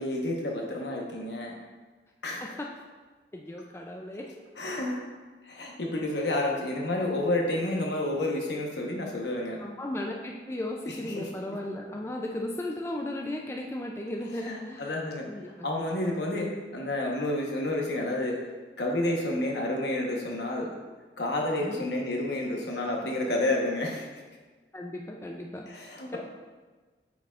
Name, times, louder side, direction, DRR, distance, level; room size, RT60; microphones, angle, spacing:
voice 1, 0.0-1.5 2.2-2.5 4.6-5.0 5.4-9.6 10.8-11.3 14.4-15.3 15.6-18.4 18.8-20.7 21.2-24.1 25.7-26.2, left 1 dB, 75° left, 0 dB, 1.1 m, -30 dB
voice 2, 3.3-4.3 9.6-14.9 15.3-15.9 21.6-21.9 24.7-25.7 26.1-26.2, left 1 dB, 15° left, 0 dB, 0.3 m, -36 dB
8.2 x 4.7 x 2.4 m, 1.3 s
head